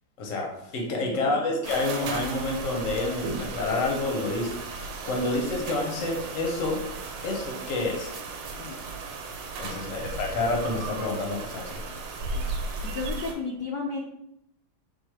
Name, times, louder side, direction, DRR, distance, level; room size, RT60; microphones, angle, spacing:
voice 1, 0.2-6.8 7.2-8.1 9.6-11.8, left 2 dB, 50° left, 0 dB, 1.1 m, -29 dB
voice 2, 1.0-1.3 5.0-5.1 8.6-8.8 9.6-9.9 12.3-12.5 12.8-14.0, left 4 dB, 70° left, -2 dB, 1.1 m, -34 dB
sound 1, 1.6-13.3, right 3 dB, 85° right, 1.4 m, -35 dB
3.9 x 2.6 x 4.6 m, 0.78 s
omnidirectional pair, 2.1 m